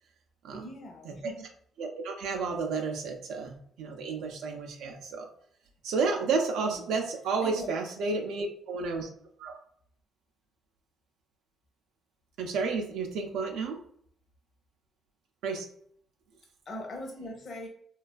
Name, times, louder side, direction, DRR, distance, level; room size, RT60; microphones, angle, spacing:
voice 1, 0.5-1.4 6.7-7.0 7.4-7.7 16.7-17.7, left 1 dB, 55° left, 1 dB, 0.6 m, -41 dB
voice 2, 1.8-5.3 5.8-9.1 9.4-9.5 12.4-13.8 15.4-15.7, right 4 dB, 90° right, 3 dB, 0.3 m, -31 dB
2.4 x 2.2 x 2.3 m, 0.64 s
cardioid pair, 90°, 0 cm